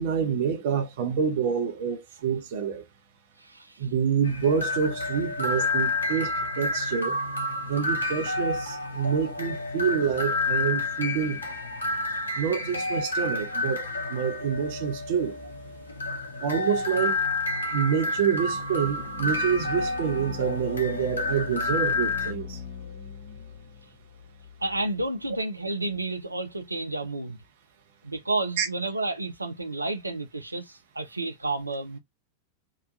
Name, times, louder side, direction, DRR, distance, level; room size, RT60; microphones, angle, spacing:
voice 1, 0.0-2.8 3.8-7.1 7.7-11.4 12.4-15.4 16.4-17.2 17.7-22.6 28.6-28.7, right 7 dB, 55° right, 0.7 m, -27 dB
voice 2, 3.4-3.9 24.6-27.4 28.0-32.0, right 2 dB, 85° right, 0.3 m, -31 dB
sound 1, 4.3-22.3, left 2 dB, 75° left, 0.6 m, -30 dB
sound 2, 18.2-25.4, left 6 dB, 50° left, 0.9 m, -41 dB
2.9 x 2.2 x 2.5 m
figure-of-eight pair, 90°, 0 cm